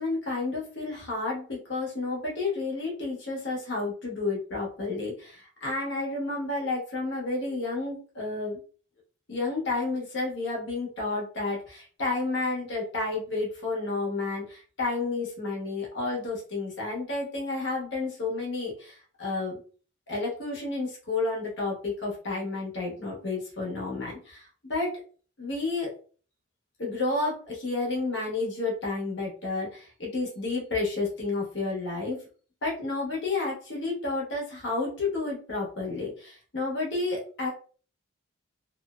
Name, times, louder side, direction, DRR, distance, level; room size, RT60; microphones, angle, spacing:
voice 1, 0.0-8.6 9.3-19.5 20.1-24.9 25.4-25.9 26.8-32.2 32.6-37.5, left 3 dB, 60° left, -2 dB, 1.0 m, -31 dB
2.7 x 2.0 x 2.3 m, 0.40 s
head